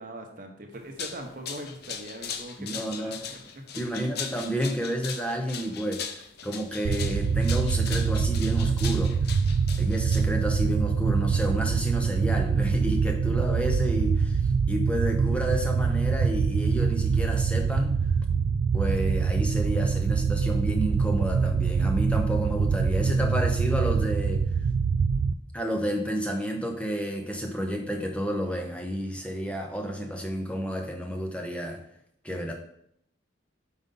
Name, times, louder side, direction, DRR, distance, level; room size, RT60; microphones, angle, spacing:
voice 1, 0.0-4.0, right 1 dB, 40° right, 3 dB, 0.9 m, -42 dB
sound 1, 0.7-10.6, left 7 dB, 50° left, 0.5 m, -39 dB
voice 2, 2.6-3.2 3.7-9.1 9.8-14.4 14.7-18.0 18.7-24.4 25.5-31.8 32.2-32.5, equal, 5° left, 2 dB, 0.7 m, -30 dB
sound 2, 6.8-25.3, right 5 dB, 80° right, 0.3 m, -25 dB
5.3 x 4.0 x 5.3 m, 0.72 s
head